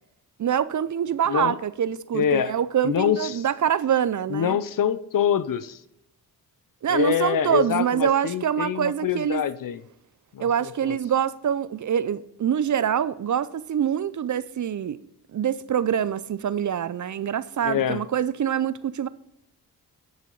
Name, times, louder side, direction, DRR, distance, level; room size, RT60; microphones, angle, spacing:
voice 1, 0.4-4.6 6.8-9.4 10.4-15.0 15.3-19.1, right 9 dB, 50° right, 0.6 m, -25 dB
voice 2, 2.1-2.5 2.8-3.4 4.3-5.8 6.9-9.8 10.3-11.0 17.6-18.0, left 9 dB, 55° left, 0.6 m, -25 dB
10.5 x 7.3 x 3.9 m
cardioid pair, 55°, 40 cm